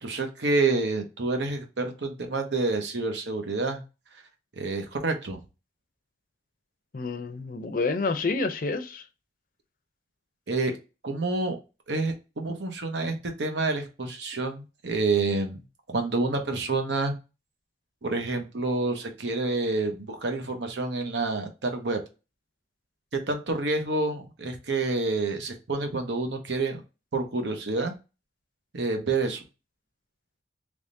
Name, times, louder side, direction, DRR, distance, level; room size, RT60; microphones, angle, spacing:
voice 1, 0.0-3.8 4.6-5.4 10.5-10.8 11.0-11.6 11.9-15.6 15.9-17.1 18.0-22.0 23.1-26.8 27.1-27.9 28.7-29.4, right 3 dB, 85° right, 0.9 m, -28 dB
voice 2, 6.9-9.0, left 3 dB, 50° left, 0.5 m, -28 dB
3.5 x 3.1 x 2.6 m
head